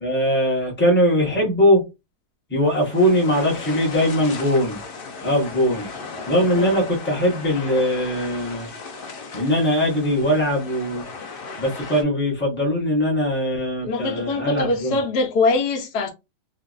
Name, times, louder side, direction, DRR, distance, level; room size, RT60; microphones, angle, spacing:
voice 1, 0.0-1.8 2.5-4.8 5.2-5.9 6.3-8.7 9.3-11.0 11.6-15.0, equal, 10° left, 0.9 m, -21 dB
sound 1, 2.6-12.0, left 4 dB, 50° left, 0.6 m, -36 dB
voice 2, 6.6-6.9 13.8-16.1, left 3 dB, 75° left, 1.2 m, -23 dB
3.0 x 2.4 x 2.5 m
omnidirectional pair, 1.7 m